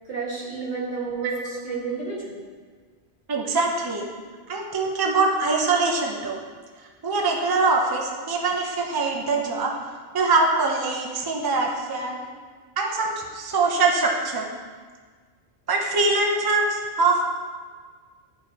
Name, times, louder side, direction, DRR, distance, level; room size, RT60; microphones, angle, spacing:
voice 1, 0.1-2.4 12.0-12.1, right 4 dB, 80° right, -7 dB, 2.3 m, -31 dB
voice 2, 1.2-1.6 3.3-4.1 4.5-6.4 7.0-9.8 10.1-12.2 12.8-14.5 15.7-17.2, right 3 dB, 25° right, 0 dB, 0.6 m, -23 dB
11.0 x 4.8 x 3.0 m, 1.5 s
omnidirectional pair, 1.1 m